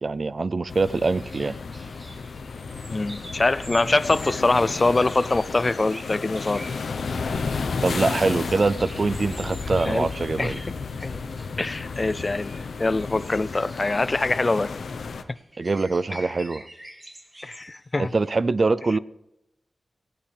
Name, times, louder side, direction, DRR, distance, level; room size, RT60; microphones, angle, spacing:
voice 1, 0.0-1.5 7.8-10.6 15.6-16.6 18.0-19.0, right 3 dB, 50° right, 0.4 m, -24 dB
sound 1, 0.7-15.2, left 4 dB, 80° left, 0.9 m, -32 dB
sound 2, 0.9-18.4, right 1 dB, 25° right, 2.1 m, -46 dB
voice 2, 2.9-6.6 9.9-10.1 10.4-10.7 11.0-11.2 11.6-12.5 12.8-14.7 17.4-18.1, left 2 dB, 35° left, 0.4 m, -24 dB
18.5 x 16.5 x 3.4 m
cardioid pair, 65°, 0 cm